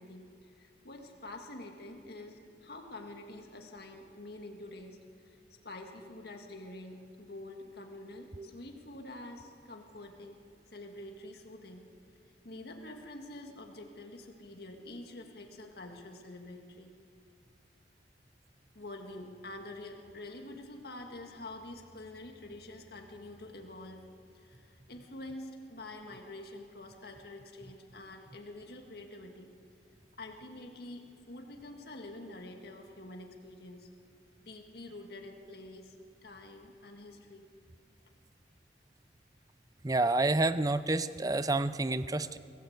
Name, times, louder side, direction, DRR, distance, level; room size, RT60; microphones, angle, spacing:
voice 1, 0.0-5.0 5.2-5.4 5.6-10.4 10.7-11.8 12.4-16.9 18.7-24.1 24.3-29.5 30.2-33.9 34.4-36.0 36.2-37.5, left 2 dB, 60° left, 3 dB, 2.0 m, -47 dB
voice 2, 39.8-42.4, right 2 dB, 20° right, 14 dB, 0.6 m, -29 dB
23.5 x 16.0 x 8.0 m, 2.4 s
head